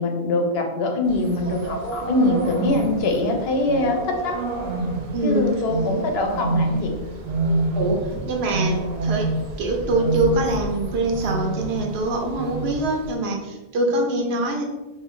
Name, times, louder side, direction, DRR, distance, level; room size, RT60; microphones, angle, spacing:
voice 1, 0.0-4.4 5.2-6.9, left 2 dB, 80° left, 3 dB, 0.8 m, -23 dB
sound 1, 1.1-13.1, right 2 dB, 55° right, 0.6 m, -28 dB
voice 2, 5.1-5.5 7.7-9.3 9.6-14.6, right 2 dB, 90° right, 2 dB, 0.9 m, -24 dB
2.6 x 2.5 x 3.5 m, 1.1 s
omnidirectional pair, 1.0 m